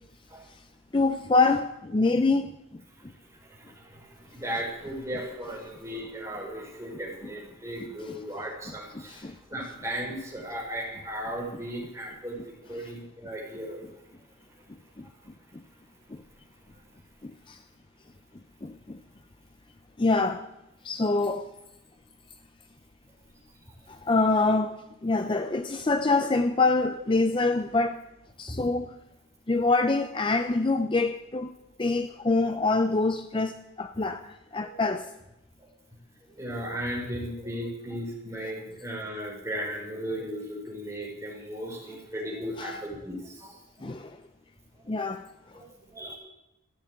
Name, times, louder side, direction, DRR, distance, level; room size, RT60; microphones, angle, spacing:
voice 1, 0.9-2.8 7.8-8.2 8.9-9.3 12.8-12.9 15.0-15.1 15.5-15.6 16.1-16.2 17.2-17.6 18.6-19.0 20.0-20.5 20.8-21.5 23.9-28.0 28.4-28.9 29.5-35.1 42.6-42.8 43.8-44.2 44.9-45.3, left 3 dB, 25° left, 0.5 m, -26 dB
voice 2, 3.5-12.4 12.7-13.8 28.5-28.6 34.6-34.7 36.4-43.6 45.5-46.2, equal, 15° right, 4.6 m, -36 dB
14.0 x 8.6 x 9.1 m
head